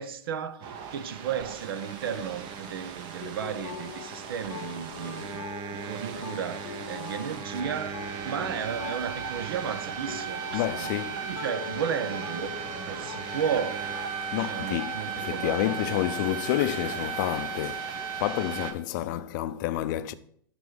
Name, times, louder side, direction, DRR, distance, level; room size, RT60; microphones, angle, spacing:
voice 1, 0.0-5.5 5.7-10.9 11.2-12.5 12.9-13.9 14.3-15.9, right 7 dB, 75° right, 0.7 m, -34 dB
sound 1, 0.6-18.7, right 7 dB, 40° right, 0.9 m, -36 dB
sound 2, 3.2-16.9, left 8 dB, 80° left, 0.9 m, -43 dB
voice 2, 10.5-11.3 13.1-13.6 13.9-14.0 14.3-20.1, left 13 dB, 55° left, 0.5 m, -30 dB
6.1 x 5.9 x 3.9 m
hypercardioid pair, 120°, 12 cm